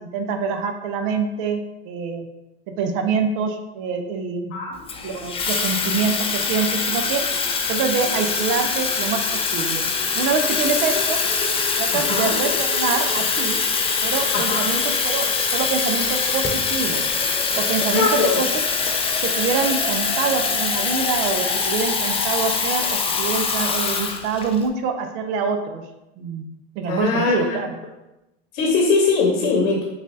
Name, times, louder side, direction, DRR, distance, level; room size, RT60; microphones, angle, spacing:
voice 1, 0.0-2.3 2.8-4.5 5.0-7.2 7.7-9.8 10.2-11.2 11.8-13.6 14.0-15.3 15.5-17.0 17.5-18.6 19.2-25.8 26.2-26.5 26.8-27.8, right 5 dB, 60° right, 6 dB, 0.7 m, -25 dB
Water tap faucet / Fill (with liquid), 4.9-24.6, left 5 dB, 15° left, 0.4 m, -23 dB
voice 2, 11.9-12.4 14.3-14.6 17.9-18.4 26.9-27.6 28.5-29.8, left 4 dB, 75° left, -1 dB, 1.0 m, -21 dB
6.0 x 2.5 x 2.7 m, 0.96 s
supercardioid pair, 105°, 36 cm